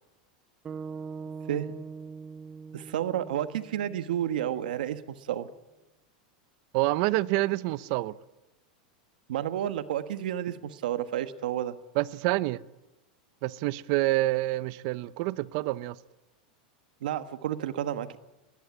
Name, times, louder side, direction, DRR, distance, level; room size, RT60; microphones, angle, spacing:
sound 1, 0.6-4.9, right 5 dB, 20° right, 0.7 m, -42 dB
voice 1, 2.7-5.5 9.3-11.8 17.0-18.2, right 11 dB, 85° right, 1.4 m, -31 dB
voice 2, 6.7-8.2 11.9-12.6 13.4-16.0, right 19 dB, 55° right, 0.8 m, -27 dB
20.5 x 19.5 x 9.7 m
supercardioid pair, 140°, 5 cm